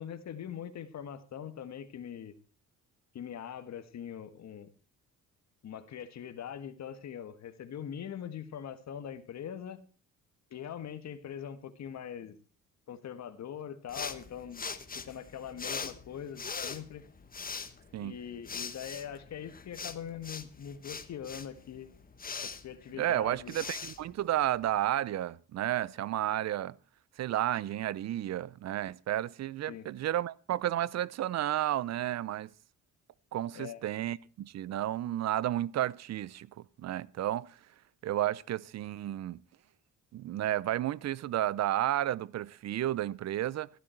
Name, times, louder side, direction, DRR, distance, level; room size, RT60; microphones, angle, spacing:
voice 1, 0.0-2.4 3.1-4.7 5.6-9.8 10.5-12.3 12.9-14.6 14.9-17.0 18.0-21.9 22.4-23.5 29.7-29.9 33.5-33.8, left 9 dB, 60° left, 1.7 m, -42 dB
sound 1, 13.9-24.8, left 5 dB, 30° left, 1.3 m, -42 dB
voice 2, 23.0-26.7 27.2-32.5 33.3-36.5 36.8-37.5 38.0-39.4 40.1-43.7, right 13 dB, 60° right, 0.6 m, -32 dB
14.0 x 12.0 x 4.5 m
cardioid pair, 90°, 30 cm